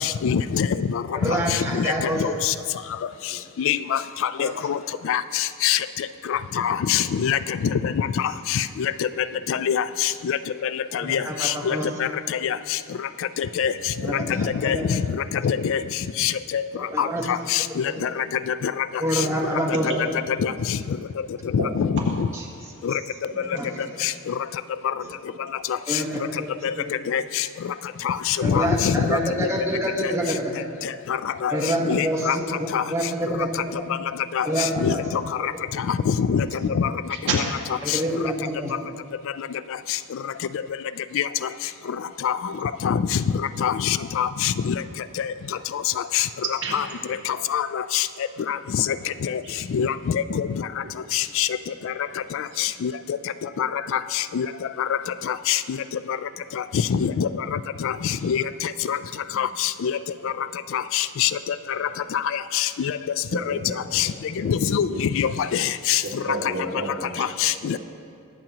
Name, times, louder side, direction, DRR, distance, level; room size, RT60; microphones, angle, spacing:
voice 1, 0.0-2.5 3.6-4.8 5.1-5.8 6.3-8.9 9.5-10.4 10.9-12.1 12.4-12.6 13.4-13.7 14.4-15.0 15.4-15.8 16.2-16.6 17.0-18.2 18.6-18.7 20.4-20.5 21.5-22.3 22.8-22.9 24.0-24.3 26.6-26.7 27.1-27.4 28.0-29.5 30.0-30.1 31.1-31.5 31.9-32.4 32.7-32.8 34.3-35.5 35.9-36.5 36.7-36.9 37.3-37.4 37.9-38.0 41.2-41.3 42.2-42.4 42.6-43.2 43.6-44.7 45.7-45.8 46.1-46.3 46.7-46.8 47.3-48.1 48.5-48.6 48.9-49.0 49.2-49.4 49.7-50.5 51.1-51.5 51.8-51.9 52.3-52.9 53.6-54.5 54.8-55.0 55.3-55.8 56.9-58.4 58.9-59.0 59.4-59.9 60.7-61.3 61.8-63.0 63.5-64.1 64.4-66.0 67.2-67.8, left 8 dB, 60° left, 14 dB, 0.3 m, -24 dB
voice 2, 1.1-2.2 4.4-4.5 10.9-11.8 14.0-14.1 14.4-14.8 16.7-17.2 17.9-18.0 19.0-19.9 22.3-22.4 23.5-23.7 25.9-26.5 28.4-30.5 31.5-33.5 33.7-33.9 34.4-35.0 37.8-38.7, right 1 dB, 15° right, -2 dB, 1.1 m, -27 dB
voice 3, 23.3-23.6 25.0-25.1 37.1-37.4 42.5-42.6 46.6-46.7 49.4-49.5 53.6-53.7 63.3-63.7 64.4-64.5 64.9-65.0 66.0-67.2, right 3 dB, 55° right, -3 dB, 2.1 m, -32 dB
22.5 x 7.5 x 2.9 m, 2.5 s
head